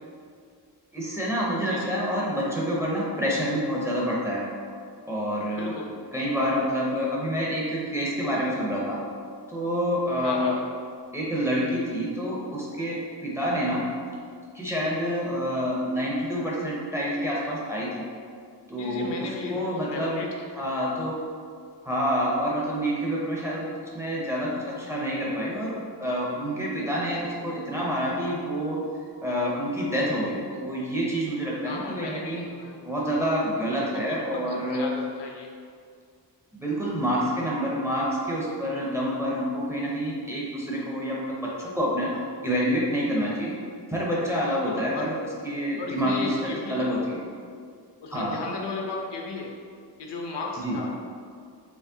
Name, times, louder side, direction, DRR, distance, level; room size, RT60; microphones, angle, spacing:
voice 1, 0.9-4.4 5.1-5.8 6.1-9.0 9.5-10.6 11.1-13.8 14.5-18.0 18.7-20.2 20.5-21.2 21.8-23.7 23.9-25.7 26.0-28.8 29.2-32.5 32.8-34.9 36.5-43.5 43.9-45.1 45.4-47.2 48.1-48.4 50.6-50.8, equal, 5° right, -6 dB, 0.6 m, -27 dB
voice 2, 5.5-5.9 10.2-10.5 18.8-20.3 31.6-32.8 34.3-35.5 44.5-45.2 45.8-47.0 48.0-49.5 50.0-50.9, left 3 dB, 70° left, 0 dB, 0.7 m, -35 dB
4.4 x 3.2 x 2.7 m, 2.2 s
wide cardioid pair, 160°, 43 cm